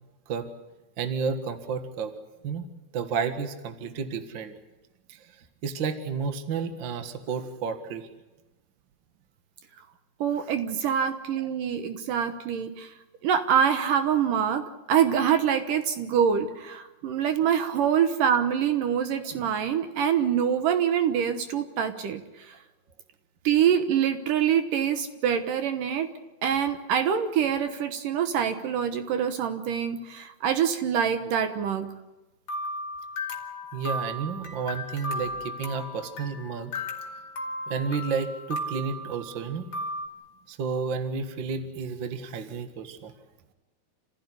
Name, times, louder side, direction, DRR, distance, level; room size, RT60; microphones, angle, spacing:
voice 1, 1.0-2.1 2.4-2.6 2.9-4.5 5.1-5.3 5.6-8.1 33.7-36.7 37.7-39.7 40.5-43.1, right 5 dB, 50° right, 7 dB, 1.4 m, -31 dB
voice 2, 10.2-12.9 13.2-22.5 23.4-26.1 26.4-31.9, right 8 dB, 65° right, 8 dB, 2.4 m, -25 dB
sound 1, 32.5-40.1, left 1 dB, 40° left, 2.9 m, -35 dB
28.5 x 15.5 x 9.8 m, 1.1 s
omnidirectional pair, 4.6 m